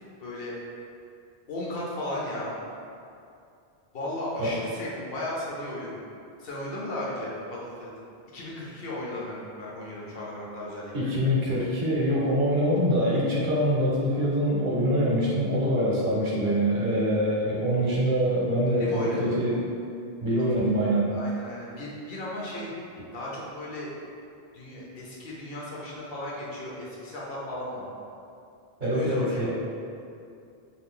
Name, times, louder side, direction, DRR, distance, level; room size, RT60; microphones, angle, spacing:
voice 1, 0.2-0.5 1.5-2.6 3.9-6.0 6.4-7.9 8.3-11.1 18.7-19.4 21.1-22.7 23.1-23.9 24.5-27.9 28.8-29.5, left 1 dB, 70° left, -5 dB, 0.9 m, -35 dB
voice 2, 10.9-19.6 20.2-21.1 28.8-29.5, equal, 60° right, -6 dB, 0.8 m, -24 dB
2.7 x 2.4 x 3.5 m, 2.5 s
omnidirectional pair, 1.0 m